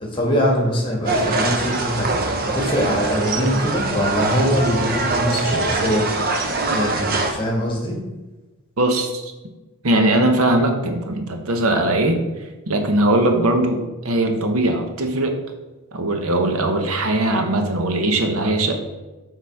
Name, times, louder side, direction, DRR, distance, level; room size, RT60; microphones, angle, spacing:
voice 1, 0.1-6.0 6.7-8.0, equal, 25° left, 0 dB, 1.3 m, -22 dB
sound 1, 1.1-7.3, right 2 dB, 45° right, 0.6 m, -23 dB
voice 2, 8.8-9.3 9.8-12.2 12.7-15.4 15.9-18.7, right 1 dB, 75° right, 5 dB, 0.9 m, -20 dB
6.9 x 3.9 x 4.6 m, 1.1 s
head